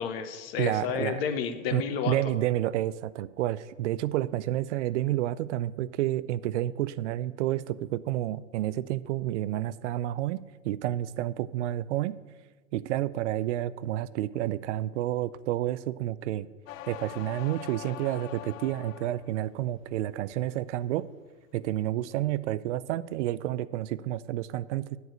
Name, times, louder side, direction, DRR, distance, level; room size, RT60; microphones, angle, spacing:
voice 1, 0.0-2.1, left 7 dB, 50° left, 8 dB, 1.0 m, -31 dB
voice 2, 0.6-1.2 1.7-12.2 12.7-16.5 16.9-21.1 21.5-25.0, right 14 dB, 65° right, 17 dB, 0.5 m, -30 dB
sound 1, 16.7-19.4 19.8-20.3, left 12 dB, 85° left, 0.6 m, -43 dB
9.7 x 4.7 x 7.9 m, 1.3 s
supercardioid pair, 155°, 38 cm